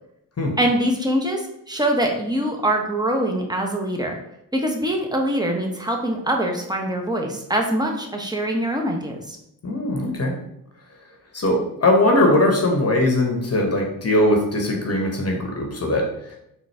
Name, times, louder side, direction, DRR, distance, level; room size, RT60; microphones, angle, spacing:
voice 1, 0.6-4.2 4.5-9.4, right 1 dB, 10° right, 2 dB, 0.9 m, -23 dB
voice 2, 9.6-10.3 11.3-16.1, left 1 dB, 30° left, 1 dB, 1.0 m, -20 dB
3.8 x 2.5 x 3.3 m, 0.79 s
hypercardioid pair, 40°, 46 cm